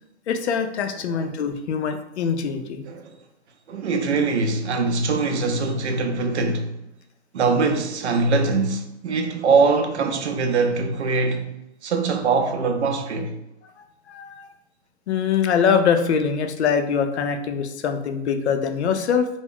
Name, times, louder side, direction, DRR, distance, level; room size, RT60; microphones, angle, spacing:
voice 1, 0.3-2.8 14.1-14.5 15.1-19.3, left 6 dB, 80° left, 0.5 m, -23 dB
voice 2, 2.9-3.2 3.7-6.8 7.3-13.4, right 4 dB, 85° right, 0.5 m, -22 dB
2.3 x 2.0 x 3.6 m
hypercardioid pair, 130°, 33 cm